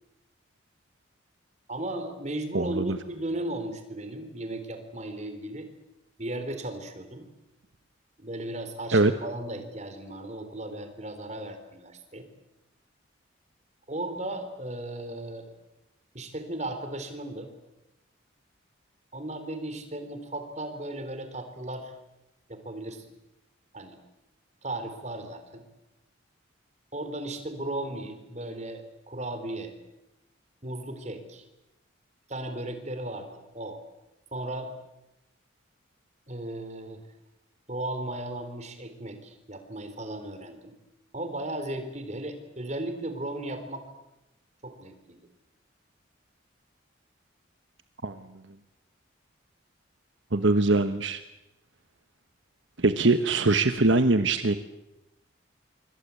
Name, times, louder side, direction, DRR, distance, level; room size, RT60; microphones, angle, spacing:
voice 1, 1.7-5.7 6.2-7.3 8.2-12.3 13.9-15.5 16.1-17.5 19.1-21.9 22.5-23.2 23.7-24.0 24.6-25.7 26.9-29.7 30.6-31.4 32.3-33.8 34.3-34.7 36.3-37.0 37.7-40.7 41.1-43.8 44.6-45.2, right 1 dB, 35° right, 8 dB, 3.9 m, -36 dB
voice 2, 2.5-3.0 8.9-9.1 48.0-48.1 50.3-51.2 52.8-54.6, right 2 dB, 70° right, 9 dB, 1.2 m, -22 dB
27.0 x 24.5 x 8.4 m, 0.95 s
head